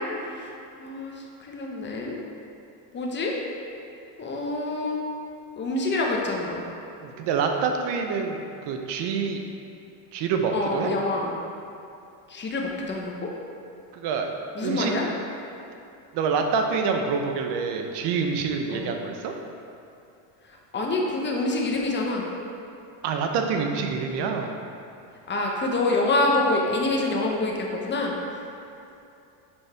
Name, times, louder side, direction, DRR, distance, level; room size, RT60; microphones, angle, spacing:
voice 1, 0.8-2.2 2.9-3.3 4.2-5.0 5.6-6.6 10.5-11.3 12.3-13.3 14.5-15.1 18.7-18.9 20.7-22.3 25.3-28.1, left 2 dB, 20° left, -1 dB, 1.0 m, -26 dB
voice 2, 7.0-9.4 10.1-11.0 13.9-14.3 14.6-15.0 16.1-19.3 23.0-24.6, right 5 dB, 55° right, 4 dB, 0.8 m, -26 dB
7.1 x 5.1 x 3.4 m, 2.7 s
supercardioid pair, 110°, 49 cm